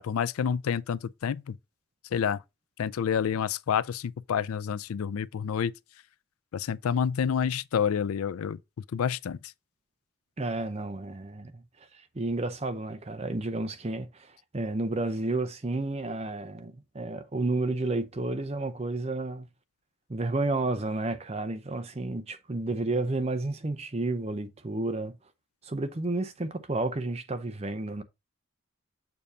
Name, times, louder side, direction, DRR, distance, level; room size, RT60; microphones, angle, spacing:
voice 1, 0.0-1.6 2.1-2.4 2.8-5.7 6.5-8.6 8.9-9.4, left 7 dB, 85° left, 0.4 m, -28 dB
voice 2, 10.4-11.6 11.9-19.5 20.1-25.1 25.6-28.0, right 2 dB, 30° right, 0.6 m, -31 dB
6.8 x 2.7 x 5.5 m
head